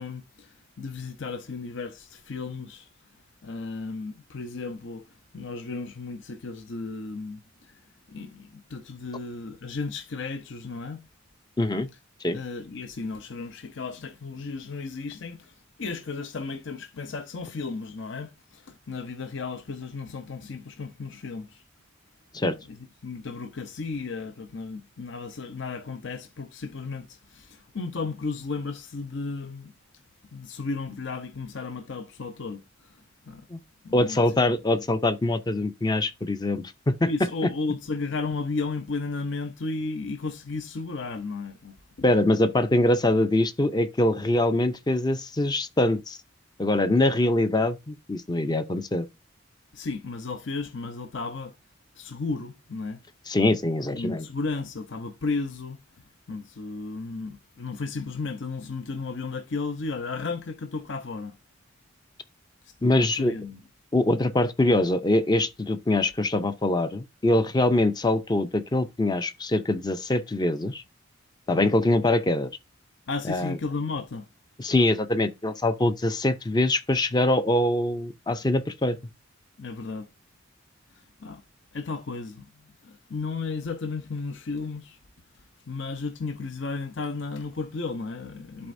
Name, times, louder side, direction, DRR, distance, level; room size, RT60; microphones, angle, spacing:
voice 1, 0.0-2.9 3.4-7.8 8.1-11.1 12.3-21.6 22.6-22.8 23.0-29.7 30.3-33.5 33.8-34.2 34.7-34.8 37.0-41.8 49.7-51.5 52.0-53.0 53.9-61.4 62.8-63.6 73.1-74.3 79.6-80.1 80.9-81.4 81.7-85.0 85.7-88.7, left 4 dB, 65° left, 0.6 m, -34 dB
voice 2, 11.6-11.9 12.2-12.4 22.3-22.6 33.5-33.6 33.9-37.1 42.0-46.2 46.6-49.1 53.3-54.3 62.8-63.3 63.9-70.8 71.5-72.5 73.3-73.6 74.6-79.0, left 1 dB, 20° left, 0.5 m, -23 dB
11.0 x 4.2 x 2.6 m
head